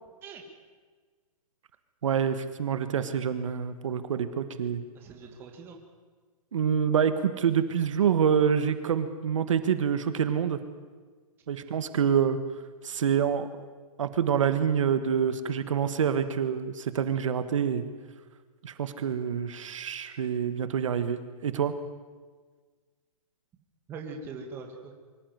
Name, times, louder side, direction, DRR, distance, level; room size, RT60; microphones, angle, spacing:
voice 1, 2.0-4.8 6.5-10.6 11.5-12.4 12.8-13.5 14.0-17.8 18.6-21.7, right 8 dB, 55° right, 11 dB, 1.5 m, -26 dB
voice 2, 4.9-5.8 23.9-24.9, right 4 dB, 10° right, 2 dB, 1.8 m, -42 dB
24.0 x 15.0 x 9.5 m, 1.5 s
hypercardioid pair, 175°, 19 cm